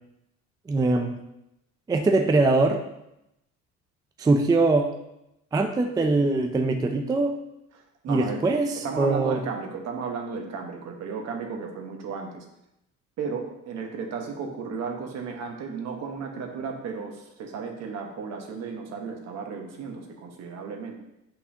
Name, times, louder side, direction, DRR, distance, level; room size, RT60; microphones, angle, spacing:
voice 1, 0.7-1.2 1.9-2.8 4.2-4.9 5.5-7.4 8.1-9.4, right 3 dB, 15° right, 4 dB, 0.3 m, -22 dB
voice 2, 7.7-8.4 8.7-12.5 13.2-21.0, right 5 dB, 60° right, 3 dB, 1.2 m, -34 dB
7.9 x 5.7 x 2.8 m, 0.86 s
cardioid pair, 145°, 30 cm